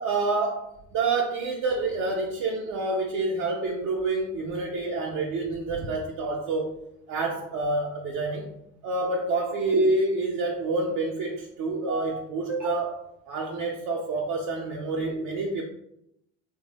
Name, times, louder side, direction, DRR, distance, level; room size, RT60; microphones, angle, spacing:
voice 1, 0.0-6.8 7.1-8.5 8.8-13.0 13.3-15.6, right 3 dB, 55° right, -2 dB, 0.6 m, -28 dB
3.1 x 2.1 x 3.0 m, 0.77 s
hypercardioid pair, 65°, 39 cm